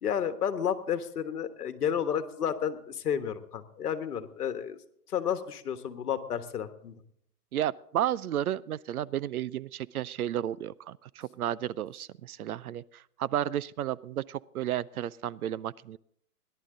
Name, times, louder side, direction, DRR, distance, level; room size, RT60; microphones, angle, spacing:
voice 1, 0.0-4.8 5.1-6.9, left 8 dB, 70° left, 10 dB, 1.5 m, -31 dB
voice 2, 7.5-16.0, right 11 dB, 65° right, 20 dB, 0.5 m, -32 dB
17.5 x 11.0 x 3.8 m, 0.68 s
hypercardioid pair, 150°, 48 cm